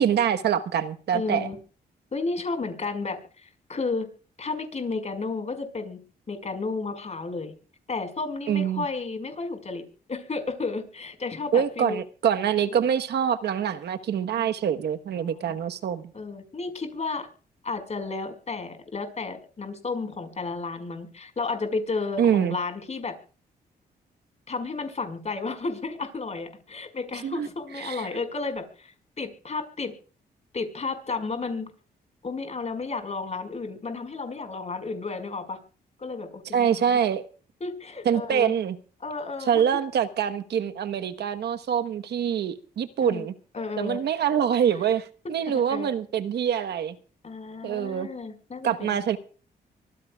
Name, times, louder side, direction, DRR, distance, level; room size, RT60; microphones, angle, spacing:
voice 1, 0.0-1.5 8.5-8.8 11.5-16.0 22.2-22.6 27.2-27.5 27.7-28.1 36.5-37.2 38.0-38.8 39.5-43.3 43.8-47.0 47.6-48.1 48.6-49.2, right 8 dB, 75° right, 8 dB, 1.2 m, -25 dB
voice 2, 1.1-1.6 2.1-4.1 4.4-6.0 6.3-7.5 7.9-12.0 14.4-14.5 15.1-15.6 16.1-17.3 17.6-23.2 24.5-29.9 30.5-31.7 32.2-35.6 36.0-37.0 37.6-38.5 39.0-39.6 43.0-43.3 43.5-44.0 45.2-45.9 47.2-49.2, left 3 dB, 40° left, 8 dB, 5.2 m, -32 dB
24.5 x 15.0 x 2.4 m, 0.39 s
cardioid pair, 80°, 17 cm